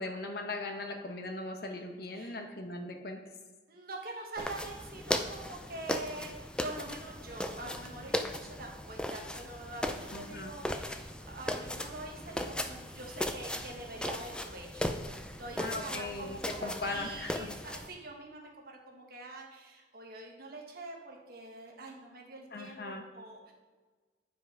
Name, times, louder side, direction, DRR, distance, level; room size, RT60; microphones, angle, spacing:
voice 1, 0.0-3.2 10.1-10.5 15.6-17.5 22.5-23.0, left 2 dB, 60° left, 4 dB, 1.0 m, -39 dB
voice 2, 3.7-6.3 6.6-23.5, right 2 dB, 55° right, 0 dB, 1.4 m, -45 dB
sound 1, 4.4-17.9, left 1 dB, 5° left, 0.4 m, -37 dB
9.2 x 5.8 x 4.8 m, 1.4 s
head